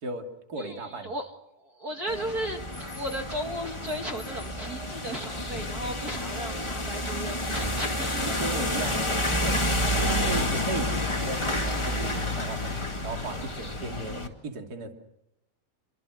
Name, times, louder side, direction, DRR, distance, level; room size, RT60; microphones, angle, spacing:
voice 1, 0.0-1.1 8.2-9.7 10.0-12.8 13.0-14.9, right 3 dB, 30° right, 4 dB, 2.5 m, -36 dB
voice 2, 0.6-1.2 1.8-8.4 10.1-10.3, equal, 45° right, 4 dB, 1.1 m, -35 dB
sound 1, 2.1-14.3, left 1 dB, 15° left, 1.0 m, -29 dB
29.0 x 23.0 x 6.5 m, 0.86 s
omnidirectional pair, 4.5 m